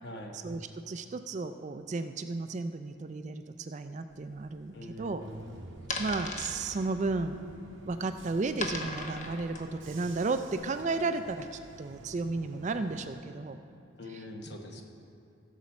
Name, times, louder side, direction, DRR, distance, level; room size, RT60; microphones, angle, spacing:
voice 1, 0.0-0.4 4.7-5.4 14.0-14.8, left 1 dB, 55° left, 2 dB, 1.1 m, -43 dB
voice 2, 0.9-5.2 6.0-7.4 7.9-13.6, right 3 dB, 35° right, 9 dB, 0.3 m, -33 dB
sound 1, 4.1-10.6, left 2 dB, 35° left, 0.9 m, -40 dB
Bus / Engine, 5.2-13.2, right 2 dB, 60° right, 0.7 m, -50 dB
15.5 x 7.2 x 4.3 m, 2.7 s
head